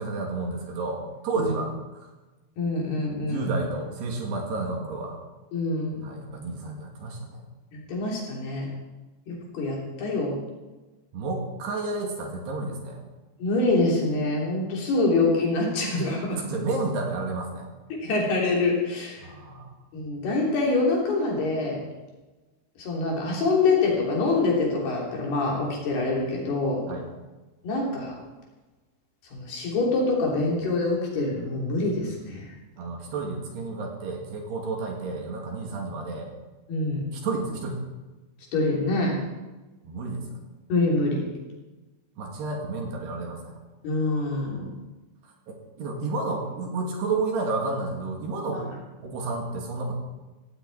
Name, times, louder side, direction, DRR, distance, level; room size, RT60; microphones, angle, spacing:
voice 1, 0.0-2.1 3.2-5.2 6.0-7.4 11.1-13.0 16.5-17.7 19.2-19.7 26.9-27.1 32.8-36.3 37.1-37.8 39.9-40.3 42.2-43.6 45.5-48.7 49.0-50.0, right 3 dB, 65° right, 1 dB, 4.2 m, -31 dB
voice 2, 2.6-3.4 5.5-6.0 7.7-8.7 9.3-10.3 13.4-16.4 17.9-19.2 19.9-21.8 22.8-26.8 27.6-28.1 29.3-32.4 36.7-37.1 38.5-39.2 40.7-41.2 43.8-44.7 48.5-48.6, left 2 dB, 60° left, -2 dB, 5.1 m, -25 dB
17.5 x 16.5 x 4.2 m, 1.2 s
omnidirectional pair, 5.4 m